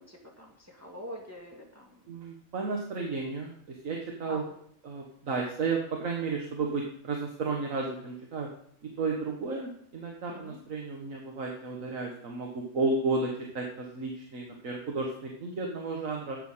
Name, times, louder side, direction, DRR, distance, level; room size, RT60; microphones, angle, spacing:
voice 1, 0.0-1.9 4.3-4.4 10.3-10.6, equal, 10° right, -2 dB, 2.2 m, -45 dB
voice 2, 2.1-4.4 4.8-8.5 9.0-16.4, right 3 dB, 85° right, 0 dB, 1.8 m, -33 dB
11.0 x 8.4 x 5.7 m, 0.67 s
omnidirectional pair, 1.3 m